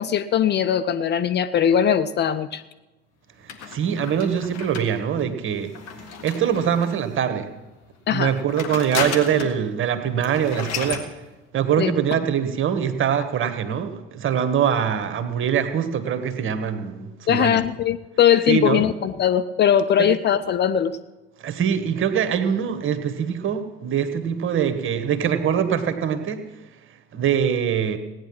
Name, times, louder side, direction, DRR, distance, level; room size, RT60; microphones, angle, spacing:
voice 1, 0.0-2.6 8.1-8.3 11.8-11.9 17.3-20.9, left 9 dB, 30° left, 11 dB, 0.5 m, -20 dB
voice 2, 3.4-5.7 6.2-7.5 8.1-11.0 11.5-17.6 18.5-18.8 20.0-20.1 21.4-26.4 27.1-28.0, right 8 dB, 40° right, 9 dB, 1.4 m, -23 dB
sound 1, 3.5-7.1 8.1-9.6 9.9-10.0 10.2-11.1, left 6 dB, 50° left, 1.8 m, -33 dB
17.0 x 9.5 x 6.0 m, 1.1 s
figure-of-eight pair, 60°, 33 cm